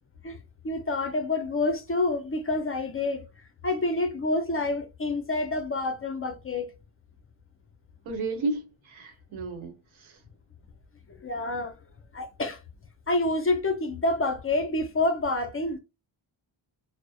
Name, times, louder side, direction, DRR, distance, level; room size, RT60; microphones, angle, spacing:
voice 1, 0.2-3.2 3.6-6.7 11.2-11.7 12.1-12.6 13.1-15.8, left 2 dB, 30° left, 0.5 m, -28 dB
voice 2, 8.0-10.2, right 3 dB, 90° right, 0.9 m, -33 dB
2.6 x 2.0 x 2.3 m
wide cardioid pair, 120°, 47 cm